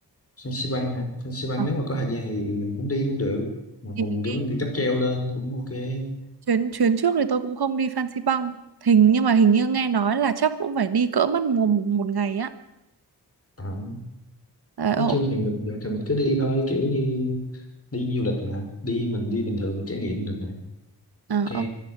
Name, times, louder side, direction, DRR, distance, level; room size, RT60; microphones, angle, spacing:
voice 1, 0.4-3.5 3.8-6.1 13.6-14.0 15.0-17.5 17.9-20.6 21.5-21.7, left 1 dB, 35° left, 3 dB, 5.4 m, -27 dB
voice 2, 4.0-4.4 6.5-12.5 14.8-15.2 21.3-21.7, right 6 dB, 65° right, 12 dB, 1.5 m, -22 dB
25.0 x 11.0 x 9.7 m, 0.91 s
wide cardioid pair, 120°, 41 cm